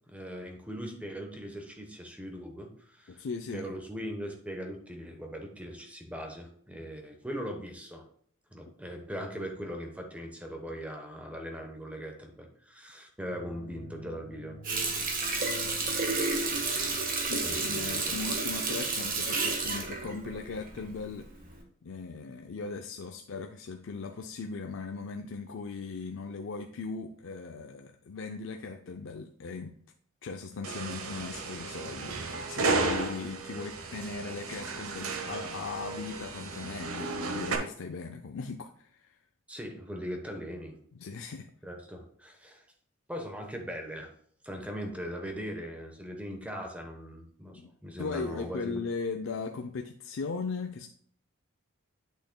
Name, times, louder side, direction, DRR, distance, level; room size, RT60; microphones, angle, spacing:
voice 1, 0.1-3.2 3.5-8.0 8.5-14.6 17.4-18.2 39.5-40.8 41.6-42.6 43.1-44.1 44.4-48.8, equal, 5° right, 3 dB, 0.9 m, -40 dB
voice 2, 3.1-3.7 17.3-21.3 21.8-29.7 30.2-39.2 41.0-41.5 47.5-47.7 48.0-50.9, left 4 dB, 65° left, 5 dB, 0.4 m, -38 dB
sound 1, 13.2-18.1, right 1 dB, 40° left, 1.4 m, -51 dB
Water tap faucet, 14.6-21.0 21.4-21.6, right 3 dB, 40° right, 1.3 m, -31 dB
sound 2, 30.6-37.6, right 3 dB, 80° right, 1.0 m, -34 dB
8.1 x 6.5 x 2.2 m, 0.62 s
head